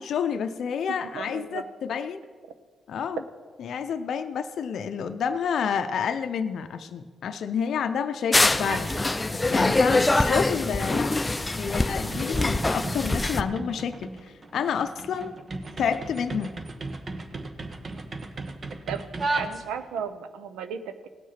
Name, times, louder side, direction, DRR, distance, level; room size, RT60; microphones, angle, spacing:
voice 1, 0.0-2.2 2.9-3.2 3.6-8.9 9.5-11.1 11.6-15.3 15.8-16.5, left 7 dB, 70° left, 8 dB, 0.5 m, -29 dB
voice 2, 1.1-1.6 18.9-19.0 19.3-21.1, right 7 dB, 90° right, 10 dB, 0.6 m, -35 dB
sound 1, 8.3-13.4, left 2 dB, 20° left, 0.5 m, -24 dB
sound 2, 8.5-9.1 9.4-20.0, right 2 dB, 45° right, 1.1 m, -36 dB
17.5 x 6.4 x 5.7 m, 1.5 s
supercardioid pair, 60°, 0 cm